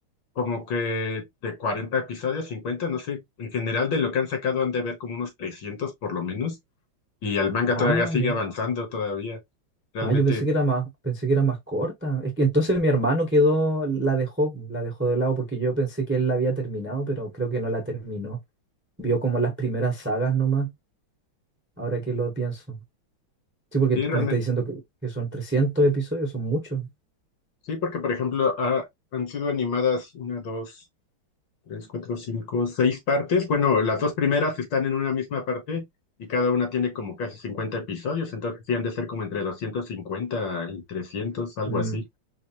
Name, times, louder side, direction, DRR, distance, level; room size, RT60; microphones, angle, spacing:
voice 1, 0.4-6.5 7.2-9.4 9.9-10.5 24.0-24.4 27.7-28.9 29.1-30.8 31.7-35.8 36.2-42.0, left 5 dB, 65° left, 1.8 m, -27 dB
voice 2, 7.7-8.4 10.0-18.4 19.0-20.7 21.8-22.8 23.7-26.9 41.7-42.0, right 2 dB, 10° right, 0.6 m, -25 dB
4.7 x 2.6 x 2.8 m
omnidirectional pair, 2.3 m